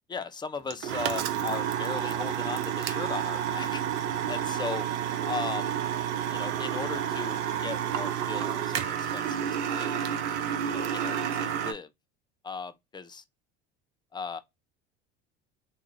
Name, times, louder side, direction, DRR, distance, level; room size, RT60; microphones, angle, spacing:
voice 1, 0.1-3.8 4.3-4.9 5.2-5.8 6.3-10.2 10.7-11.9 12.4-13.2 14.1-14.4, left 5 dB, 15° left, 0.3 m, -37 dB
sound 1, 0.7-11.7, right 9 dB, 75° right, 0.6 m, -30 dB
Wind instrument woodwind instrument, 1.3-8.8, right 7 dB, 45° right, 1.1 m, -39 dB
2.5 x 2.4 x 2.9 m
hypercardioid pair, 70°, 34 cm